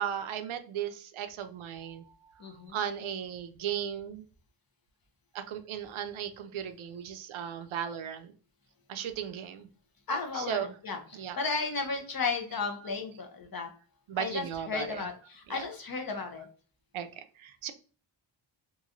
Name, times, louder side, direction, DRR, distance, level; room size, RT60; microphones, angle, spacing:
voice 1, 0.0-2.0 2.7-4.2 5.3-8.3 8.9-9.7 10.3-10.7 11.1-11.4 14.1-15.0 15.5-15.6 16.9-17.7, right 9 dB, 85° right, 9 dB, 0.6 m, -36 dB
voice 2, 2.4-2.8 10.1-13.7 14.2-16.5, left 4 dB, 50° left, 5 dB, 0.7 m, -34 dB
3.0 x 2.6 x 2.4 m, 0.40 s
wide cardioid pair, 120°, 47 cm